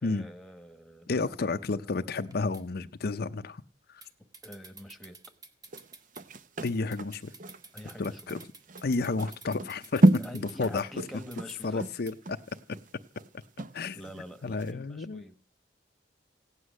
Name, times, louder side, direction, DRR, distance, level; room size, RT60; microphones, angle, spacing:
voice 1, 0.0-2.1 4.4-5.2 7.7-8.3 10.2-11.8 13.9-15.3, equal, ahead, 1.3 m, -46 dB
voice 2, 1.1-3.6 3.9-4.0 6.6-7.3 8.0-8.4 8.8-10.9 11.6-12.1 13.7-14.0 14.4-15.2, left 3 dB, 60° left, 0.6 m, -31 dB
sound 1, 2.3-2.6 4.0-4.1 4.3-6.2 6.7-10.8 11.3-11.6 12.1-12.2, right 3 dB, 20° right, 1.4 m, -50 dB
sound 2, 5.7-14.2 14.6-14.7, right 1 dB, 45° right, 0.7 m, -30 dB
16.0 x 9.8 x 6.3 m
head